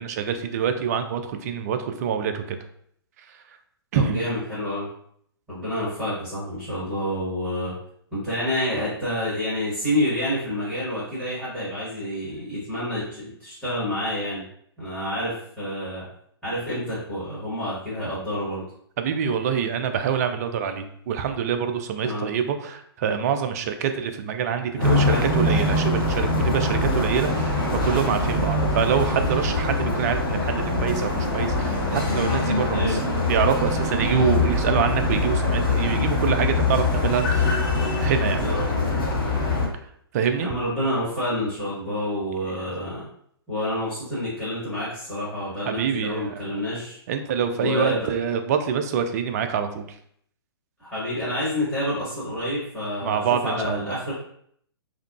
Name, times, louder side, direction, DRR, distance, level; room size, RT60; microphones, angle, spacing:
voice 1, 0.0-2.4 3.9-4.2 19.0-27.6 27.8-33.0 33.3-37.5 38.0-38.6 40.1-40.5 45.7-46.5 47.1-49.8 53.0-54.0, right 7 dB, 40° right, 8 dB, 0.3 m, -25 dB
voice 2, 3.9-4.9 5.5-7.7 8.1-14.4 14.8-16.0 16.4-18.6 22.0-22.3 24.7-25.3 32.7-33.1 38.4-38.6 40.4-43.1 43.5-47.0 47.6-48.1 50.8-54.1, left 1 dB, ahead, -11 dB, 1.4 m, -28 dB
sound 1, 24.8-39.7, left 2 dB, 55° left, 1.1 m, -23 dB
3.5 x 2.2 x 2.3 m, 0.67 s
figure-of-eight pair, 125°, 14 cm